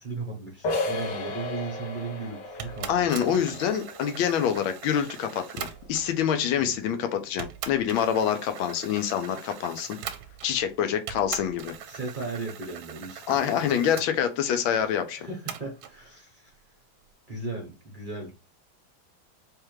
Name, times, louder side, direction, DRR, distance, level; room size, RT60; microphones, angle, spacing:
voice 1, 0.0-3.6 6.6-7.0 11.9-13.7 14.9-16.6 17.3-18.3, right 3 dB, 40° right, 0.7 m, -37 dB
sound 1, 0.6-6.1, left 2 dB, 65° left, 1.4 m, -35 dB
sound 2, 2.6-6.2 6.9-7.0 7.4-10.7 11.1-14.1 15.5-16.0, right 9 dB, 90° right, 1.4 m, -41 dB
voice 2, 2.9-10.0 10.4-11.7 13.3-15.3, left 9 dB, 85° left, 1.5 m, -26 dB
3.5 x 3.3 x 3.0 m
omnidirectional pair, 2.2 m